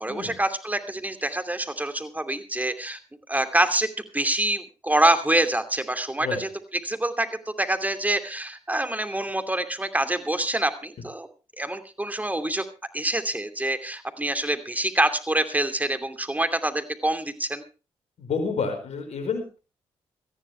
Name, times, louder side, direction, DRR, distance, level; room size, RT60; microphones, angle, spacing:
voice 1, 0.0-3.0 3.3-3.9 4.1-11.3 11.6-12.6 12.9-17.6, right 1 dB, 15° right, 8 dB, 2.7 m, -26 dB
voice 2, 18.2-19.6, left 5 dB, 65° left, 7 dB, 5.0 m, -29 dB
19.0 x 14.5 x 3.4 m, 0.32 s
supercardioid pair, 50°, 12 cm